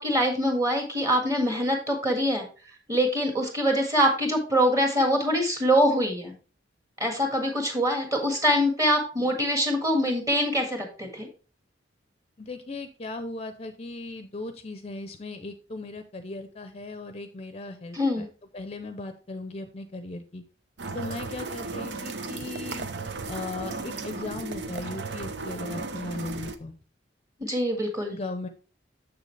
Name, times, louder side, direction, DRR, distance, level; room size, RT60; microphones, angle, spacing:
voice 1, 0.0-2.4 2.9-6.3 7.0-11.3 17.9-18.3 27.4-28.2, equal, 20° right, 3 dB, 1.7 m, -24 dB
voice 2, 12.4-18.3 18.5-20.4 20.9-22.9 23.3-26.7 28.1-28.5, left 2 dB, 35° left, 8 dB, 0.6 m, -37 dB
sound 1, 20.8-26.6, right 3 dB, 65° right, 0.7 m, -35 dB
7.0 x 6.5 x 3.2 m, 0.37 s
head